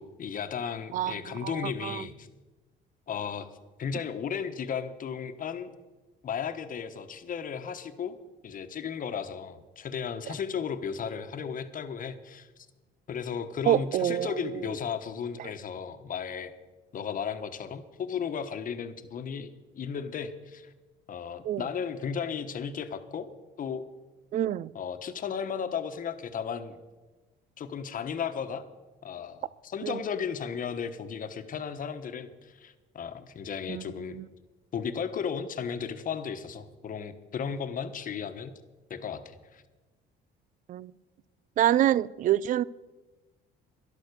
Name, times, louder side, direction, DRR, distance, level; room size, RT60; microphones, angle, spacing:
voice 1, 0.0-2.3 3.1-3.5 3.8-5.7 6.2-8.2 8.4-12.5 13.1-16.5 16.9-20.7 21.1-23.3 23.6-23.8 24.7-26.8 27.6-28.6 29.0-34.2 34.7-38.5 38.9-39.6, left 7 dB, 45° left, 1.2 m, -35 dB
voice 2, 0.9-2.0 13.7-14.3 15.4-15.5 21.4-21.6 24.3-24.7 29.8-30.0 33.7-33.8 34.1-34.2 40.7-40.9 41.6-42.6, right 12 dB, 45° right, 0.4 m, -27 dB
12.0 x 11.5 x 6.8 m
cardioid pair, 110°, 19 cm